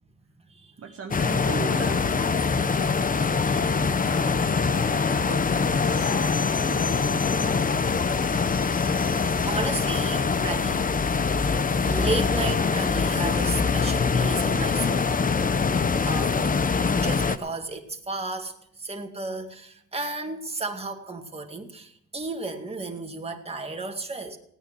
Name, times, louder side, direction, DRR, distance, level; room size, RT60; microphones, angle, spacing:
voice 1, 0.8-2.5 3.5-5.5 6.0-6.3 6.6-7.2, right 6 dB, 50° right, 3 dB, 1.5 m, -39 dB
sound 1, 1.1-17.4, left 5 dB, 25° left, 0.8 m, -24 dB
voice 2, 3.1-3.6 9.4-10.9 11.4-11.6 11.9-15.1 16.0-16.5 17.0-24.4, right 3 dB, 20° right, 4 dB, 2.1 m, -33 dB
17.0 x 9.5 x 6.0 m, 0.72 s
cardioid pair, 90°, 30 cm